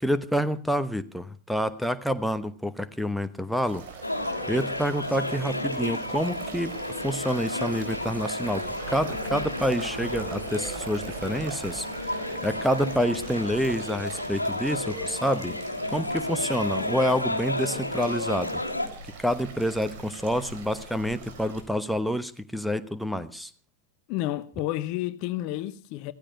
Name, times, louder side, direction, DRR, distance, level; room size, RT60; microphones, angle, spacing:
voice 1, 0.0-3.8 4.3-15.5 15.9-18.6 19.2-23.5, equal, ahead, 1.1 m, -28 dB
sound 1, 3.6-21.6, right 5 dB, 55° right, 4.2 m, -42 dB
sound 2, 4.0-18.9, left 1 dB, 85° left, 1.6 m, -32 dB
Scratching (performance technique), 11.6-12.7 13.0-14.2 14.5-15.6 15.9-16.9 17.2-18.3 18.6-19.2 19.4-19.7 20.0-20.8, right 2 dB, 85° right, 3.9 m, -49 dB
voice 2, 24.1-26.1, left 15 dB, 45° left, 0.8 m, -30 dB
15.5 x 15.5 x 5.7 m
figure-of-eight pair, 90°, 0 cm